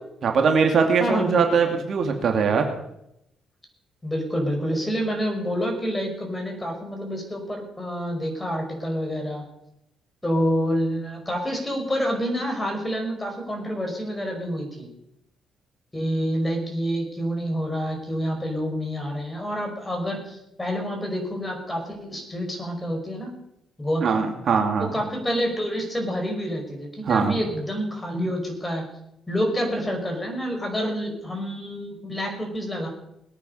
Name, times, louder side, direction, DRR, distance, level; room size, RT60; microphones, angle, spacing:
voice 1, 0.2-2.6 24.0-24.9 27.1-27.4, right 5 dB, 60° right, 4 dB, 2.4 m, -21 dB
voice 2, 1.0-1.7 4.0-9.4 10.2-14.9 15.9-23.3 23.8-24.1 24.8-28.9 29.3-32.9, equal, 15° left, 2 dB, 5.6 m, -28 dB
21.0 x 9.2 x 5.5 m, 0.80 s
cardioid pair, 90°, 0 cm